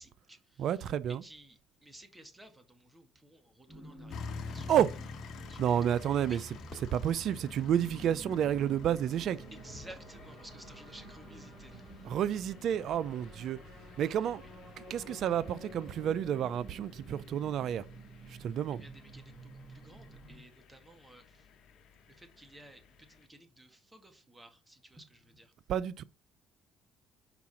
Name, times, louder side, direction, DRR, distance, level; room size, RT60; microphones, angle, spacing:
voice 1, 0.0-4.7 5.4-5.8 6.1-6.6 9.5-12.1 14.2-14.5 18.7-21.5 22.1-25.5, right 1 dB, 15° right, 2.0 m, -55 dB
voice 2, 0.6-1.2 4.7-4.9 5.6-6.4 6.9-9.4 12.1-13.6 14.0-14.4 14.8-17.8 18.3-18.8 25.7-26.0, right 10 dB, 65° right, 0.5 m, -30 dB
sound 1, 3.7-20.4, right 1 dB, 40° right, 4.9 m, -51 dB
sound 2, 4.1-23.2, left 4 dB, 65° left, 1.1 m, -49 dB
Crowd / Fireworks, 6.6-11.0, left 3 dB, 45° left, 1.8 m, -61 dB
5.9 x 4.7 x 5.8 m
supercardioid pair, 65°, 0 cm